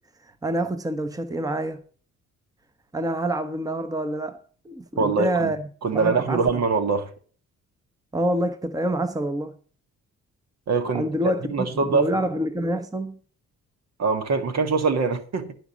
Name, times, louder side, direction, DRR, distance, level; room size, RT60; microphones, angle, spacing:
voice 1, 0.2-1.8 2.9-5.7 5.9-6.4 8.1-9.6 10.9-11.5 11.8-13.2, right 1 dB, 10° right, 1.0 m, -27 dB
voice 2, 5.0-5.5 5.8-7.1 10.7-11.1 11.5-12.1 14.0-15.5, right 4 dB, 60° right, 1.8 m, -23 dB
11.5 x 5.2 x 7.2 m
cardioid pair, 90°, 30 cm